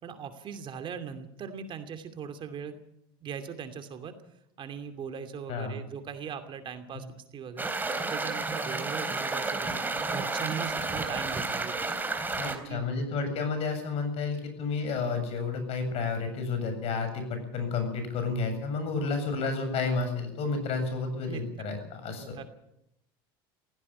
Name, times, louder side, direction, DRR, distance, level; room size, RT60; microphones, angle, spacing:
voice 1, 0.0-2.8 3.2-4.1 4.6-7.1 7.3-11.8 12.4-12.9 21.3-21.4 22.1-22.4, right 7 dB, 40° right, 8 dB, 2.7 m, -39 dB
voice 2, 5.5-5.8 12.4-22.4, left 4 dB, 55° left, 7 dB, 7.6 m, -31 dB
sound 1, 7.6-12.6, right 3 dB, 15° right, 3.4 m, -31 dB
17.0 x 16.5 x 9.8 m, 0.79 s
hypercardioid pair, 95°, 12 cm